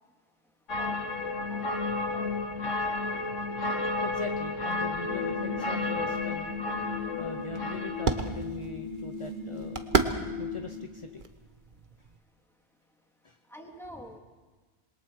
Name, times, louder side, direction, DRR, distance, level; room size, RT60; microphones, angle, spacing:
sound 1, 0.7-8.3, left 3 dB, 80° left, 1.8 m, -32 dB
voice 1, 0.8-1.6 2.1-2.3 13.5-14.2, equal, ahead, 2 dB, 2.2 m, -47 dB
voice 2, 4.0-6.6 7.2-9.8 10.4-11.2 13.2-13.4, left 4 dB, 30° left, 7 dB, 0.7 m, -41 dB
sound 2, 5.0-10.9, left 4 dB, 65° right, 3.6 m, -38 dB
sound 3, 5.9-12.2, right 4 dB, 45° right, 1.2 m, -34 dB
27.0 x 21.5 x 4.7 m, 1.3 s
omnidirectional pair, 1.3 m